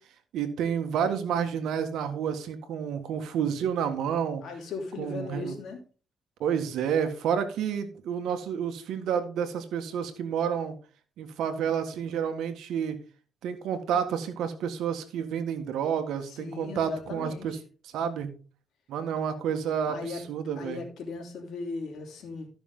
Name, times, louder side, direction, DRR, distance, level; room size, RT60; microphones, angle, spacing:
voice 1, 0.3-4.4 5.0-5.6 6.4-10.8 11.2-13.0 13.4-17.6 17.9-18.3 18.9-20.8, right 8 dB, 80° right, 8 dB, 1.6 m, -30 dB
voice 2, 4.4-5.8 16.3-17.6 19.9-20.2 20.5-22.5, left 4 dB, 65° left, 1 dB, 3.4 m, -37 dB
14.0 x 6.1 x 3.8 m, 0.37 s
cardioid pair, 90°, 0 cm